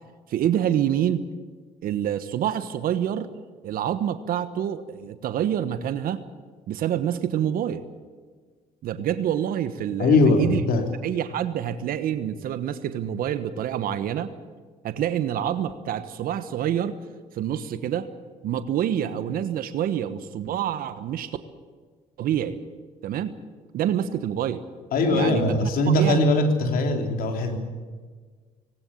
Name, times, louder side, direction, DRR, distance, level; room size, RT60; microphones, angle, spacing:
voice 1, 0.3-1.2 1.8-3.3 3.6-6.2 6.7-7.8 8.8-10.6 11.0-14.3 14.8-17.0 17.3-18.1 18.4-21.4 22.2-22.6 23.0-23.4 23.7-24.6 25.1-26.3, right 10 dB, 65° right, 11 dB, 1.3 m, -27 dB
voice 2, 10.0-10.8 24.9-27.6, left 2 dB, 65° left, 4 dB, 3.3 m, -21 dB
19.5 x 19.0 x 8.6 m, 1.5 s
supercardioid pair, 70°, 16 cm